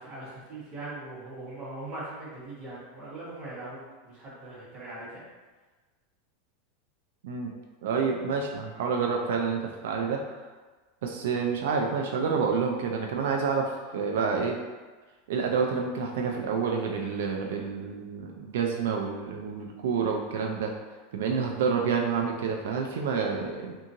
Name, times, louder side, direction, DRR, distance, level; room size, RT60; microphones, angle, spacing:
voice 1, 0.0-5.2 18.2-18.4, right 2 dB, 30° right, -9 dB, 1.2 m, -41 dB
voice 2, 7.8-10.4 11.0-14.6 15.3-20.7 21.1-23.8, right 5 dB, 80° right, 1 dB, 0.3 m, -28 dB
2.7 x 2.6 x 2.6 m, 1.3 s
supercardioid pair, 175°, 0 cm